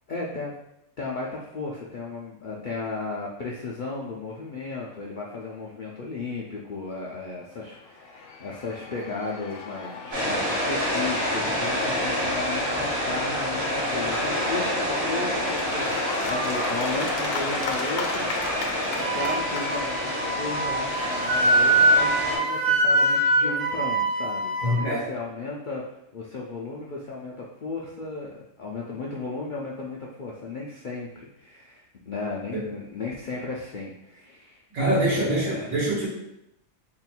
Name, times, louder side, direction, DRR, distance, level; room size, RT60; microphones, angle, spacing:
voice 1, 0.1-0.6 1.0-18.6 19.1-25.8 26.1-35.7, left 3 dB, 65° left, -4 dB, 0.5 m, -35 dB
Cheering / Applause / Crowd, 7.7-22.4, left 4 dB, 80° left, 1.0 m, -35 dB
sound 1, 10.1-22.4, equal, 60° right, 1.7 m, -28 dB
Wind instrument woodwind instrument, 19.0-24.8, right 1 dB, 35° right, 0.6 m, -23 dB
voice 2, 24.6-25.1 32.5-32.6 34.7-36.1, right 1 dB, 80° right, -6 dB, 1.9 m, -24 dB
3.5 x 2.3 x 4.3 m, 0.82 s
omnidirectional pair, 1.4 m